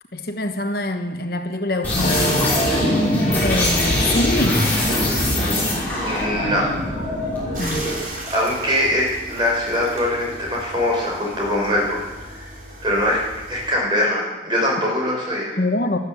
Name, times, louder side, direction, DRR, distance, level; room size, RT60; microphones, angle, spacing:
voice 1, 0.1-2.5 3.4-4.7 7.6-7.9 15.6-16.0, left 2 dB, 55° left, 6 dB, 1.1 m, -24 dB
sound 1, 1.8-8.0, left 1 dB, 10° left, 5.5 m, -21 dB
sound 2, 2.0-11.2 11.5-11.6 11.8-12.3, equal, 40° left, 1.9 m, -33 dB
voice 2, 6.1-7.0 7.5-7.6 8.3-12.0 12.3-12.5 12.8-13.2 13.5-15.6, left 1 dB, 25° right, -3 dB, 6.2 m, -22 dB
sound 3, 7.5-13.7, right 1 dB, 45° right, 4.0 m, -37 dB
13.5 x 12.5 x 8.4 m, 1.1 s
head